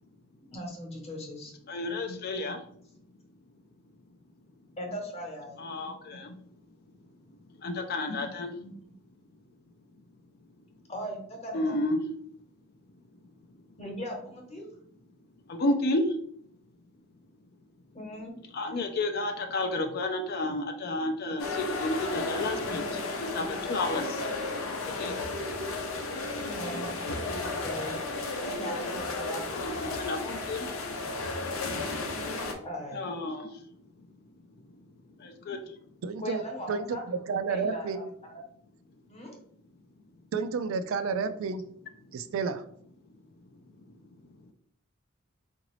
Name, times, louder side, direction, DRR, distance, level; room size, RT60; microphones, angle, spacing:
voice 1, 0.5-1.5 4.8-5.6 8.5-8.9 10.9-11.8 13.8-14.7 17.9-18.4 26.5-26.9 27.3-29.5 32.6-33.1 36.2-38.3 39.1-39.3, equal, 30° left, 1 dB, 0.9 m, -39 dB
voice 2, 1.7-2.6 5.6-6.3 7.6-8.5 11.5-12.0 15.5-16.2 18.5-24.3 24.8-25.3 27.0-27.1 29.5-30.8 32.9-33.6 35.2-35.6, left 2 dB, 50° left, 5 dB, 0.4 m, -31 dB
sound 1, 21.4-32.5, left 3 dB, 90° left, 0.7 m, -33 dB
voice 3, 36.0-36.4 36.7-38.1 40.3-41.6 42.1-42.6, right 5 dB, 70° right, 10 dB, 0.3 m, -31 dB
3.9 x 2.5 x 3.0 m, 0.65 s
head